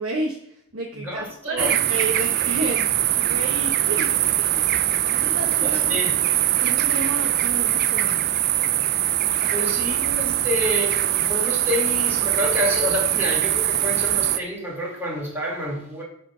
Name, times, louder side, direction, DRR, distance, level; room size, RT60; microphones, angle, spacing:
voice 1, 0.0-4.7 5.1-6.0 6.6-8.2 9.4-9.7, right 2 dB, 65° right, -1 dB, 1.2 m, -31 dB
voice 2, 1.0-1.8 5.6-6.1 9.5-16.0, left 1 dB, 10° right, -4 dB, 2.4 m, -28 dB
sound 1, 1.6-14.4, right 12 dB, 45° right, 0.4 m, -22 dB
7.4 x 4.4 x 5.7 m, 0.72 s
head